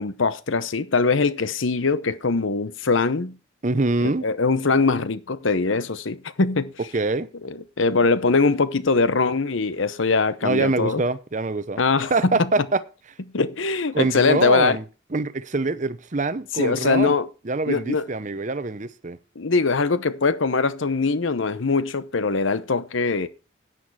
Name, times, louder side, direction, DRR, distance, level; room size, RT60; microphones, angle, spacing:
voice 1, 0.0-3.4 4.2-6.7 7.4-11.0 11.8-12.4 13.3-14.8 16.6-17.3 17.7-18.0 19.4-23.3, left 4 dB, 75° left, 0.8 m, -22 dB
voice 2, 3.6-4.3 6.9-7.3 10.4-11.8 12.1-12.8 13.9-14.8 15.1-17.2 17.4-19.2, right 3 dB, 40° right, 0.7 m, -24 dB
10.5 x 9.2 x 4.7 m
head